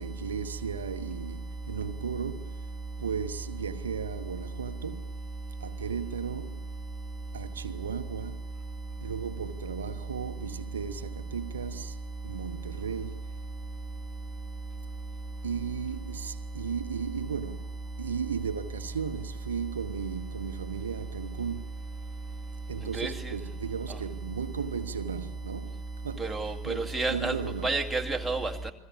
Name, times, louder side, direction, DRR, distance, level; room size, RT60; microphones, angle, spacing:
voice 1, 0.0-2.5 3.0-5.0 5.6-6.6 7.3-8.4 9.0-11.9 12.2-13.2 15.4-17.6 18.0-21.7 22.7-25.7 26.0-26.3 26.6-26.8 27.1-27.7, right 6 dB, 70° right, 1.0 m, -35 dB
voice 2, 26.2-27.4 27.6-28.7, right 3 dB, ahead, 2.3 m, -30 dB
29.0 x 21.0 x 8.7 m
figure-of-eight pair, 90°, 0 cm